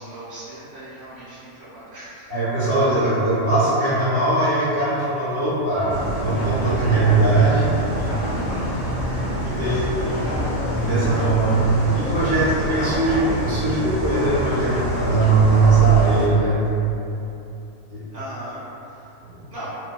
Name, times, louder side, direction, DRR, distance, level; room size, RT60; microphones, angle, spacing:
voice 1, 0.0-2.2 9.5-10.3 18.1-19.1 19.5-19.7, right 1 dB, 20° right, -13 dB, 0.6 m, -38 dB
voice 2, 2.3-8.1 8.6-8.7 9.0-9.8 10.7-16.6 17.9-18.0 19.2-19.4, right 3 dB, 45° right, -13 dB, 1.0 m, -20 dB
sound 1, 5.9-16.3, equal, 50° left, 0.6 m, -26 dB
2.7 x 2.1 x 2.3 m, 2.8 s
omnidirectional pair, 1.6 m